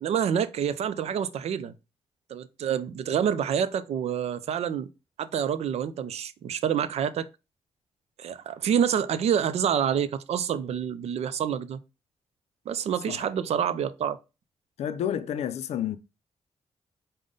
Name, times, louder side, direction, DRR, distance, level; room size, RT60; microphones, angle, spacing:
voice 1, 0.0-1.7 2.3-4.9 5.2-7.3 8.2-11.8 12.7-14.2, right 8 dB, 70° right, 0.4 m, -27 dB
voice 2, 14.8-16.0, left 9 dB, 80° left, 0.4 m, -30 dB
5.1 x 2.1 x 3.7 m
cardioid pair, 75°, 11 cm